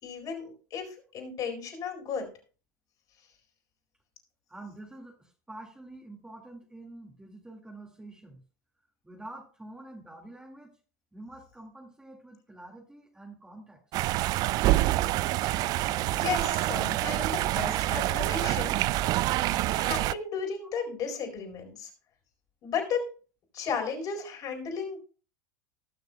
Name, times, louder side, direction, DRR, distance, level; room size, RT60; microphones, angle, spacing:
voice 1, 0.0-2.3 16.1-19.2 19.7-21.9 22.6-23.1 23.5-25.0, left 6 dB, 45° left, 1 dB, 4.2 m, -34 dB
voice 2, 4.5-8.4 9.0-10.7 11.1-13.8, right 2 dB, 10° right, 1 dB, 2.1 m, -47 dB
sound 1, 13.9-20.1, right 16 dB, 45° right, 0.3 m, -27 dB
19.5 x 6.5 x 2.2 m, 0.37 s
hypercardioid pair, 100°, 9 cm